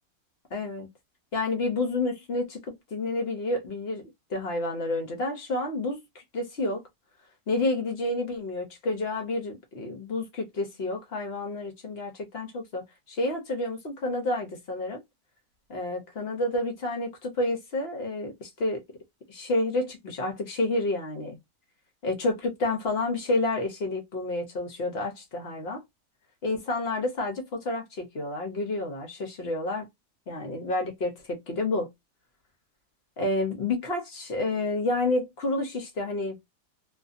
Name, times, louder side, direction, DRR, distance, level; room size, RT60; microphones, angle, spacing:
voice 1, 0.5-0.9 1.3-2.6 2.9-4.0 4.3-6.8 7.5-15.0 15.7-18.8 19.3-21.4 22.0-25.8 26.4-29.9 30.3-31.9 33.2-36.4, left 2 dB, 55° left, 0.7 m, -29 dB
2.5 x 2.4 x 2.4 m
omnidirectional pair, 1.7 m